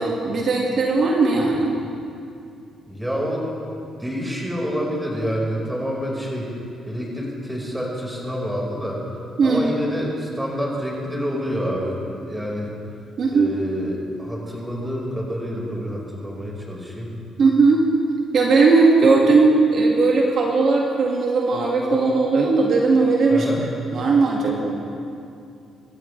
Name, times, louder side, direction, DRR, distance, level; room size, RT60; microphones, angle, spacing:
voice 1, 0.0-1.8 9.4-9.7 13.2-13.5 17.4-17.9 18.3-23.5 23.9-24.8, right 3 dB, 60° right, -1 dB, 1.9 m, -18 dB
voice 2, 2.9-3.5 4.0-6.5 6.8-9.0 9.4-12.7 13.3-17.1 23.3-23.7, equal, 5° right, -3 dB, 4.8 m, -27 dB
26.5 x 13.5 x 3.3 m, 2.5 s
cardioid pair, 90°, 0 cm